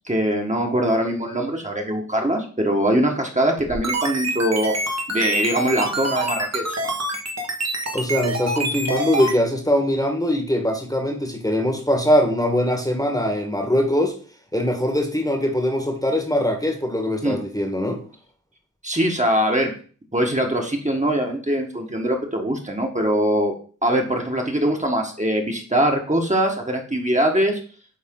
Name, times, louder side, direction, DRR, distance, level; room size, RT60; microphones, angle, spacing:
voice 1, 0.1-4.7 5.1-6.9 17.2-17.4 18.8-19.7 20.1-23.5 23.8-27.6, right 1 dB, 20° right, 1.6 m, -22 dB
sound 1, 3.6-9.3, right 2 dB, 50° right, 1.6 m, -26 dB
voice 2, 7.9-14.2 14.5-18.0, left 1 dB, 10° left, 1.6 m, -22 dB
8.6 x 3.7 x 3.8 m
cardioid pair, 45°, 32 cm